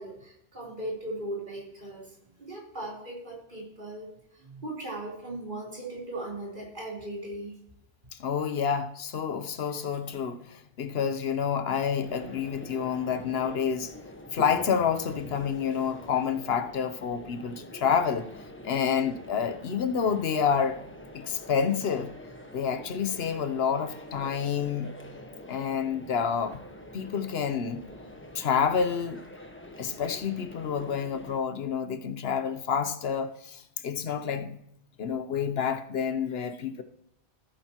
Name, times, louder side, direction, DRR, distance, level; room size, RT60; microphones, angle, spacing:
voice 1, 0.0-2.1 2.4-4.1 4.3-7.5, right 1 dB, 50° right, 3.7 m, -38 dB
voice 2, 8.2-13.9 14.3-18.3 18.6-20.8 21.1-22.1 22.5-24.9 25.5-26.6 26.9-27.9 28.3-29.2 29.8-34.6 35.0-36.8, left 7 dB, 70° left, 1.0 m, -28 dB
sound 1, 12.0-31.4, left 1 dB, 10° left, 1.1 m, -45 dB
14.5 x 9.0 x 2.9 m
omnidirectional pair, 1.1 m